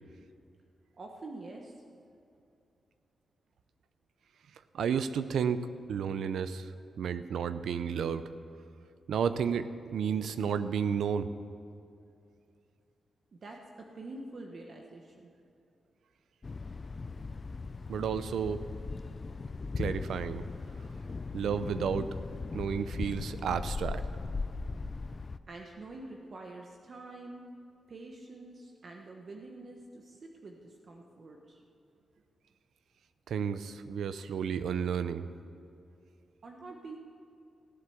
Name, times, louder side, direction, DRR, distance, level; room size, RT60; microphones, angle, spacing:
voice 1, 1.0-1.8 13.4-15.3 25.5-27.5 27.9-31.6 36.4-37.0, right 2 dB, 55° right, 1 dB, 1.2 m, -46 dB
voice 2, 4.7-6.7 7.0-8.3 9.1-11.3 17.9-18.6 19.8-20.4 21.3-22.1 22.5-24.0 33.3-35.3, right 7 dB, 85° right, 12 dB, 0.5 m, -32 dB
Thunder, 16.4-25.4, left 3 dB, 40° left, 0.5 m, -38 dB
16.5 x 7.7 x 7.2 m, 2.6 s
cardioid pair, 80°, 0 cm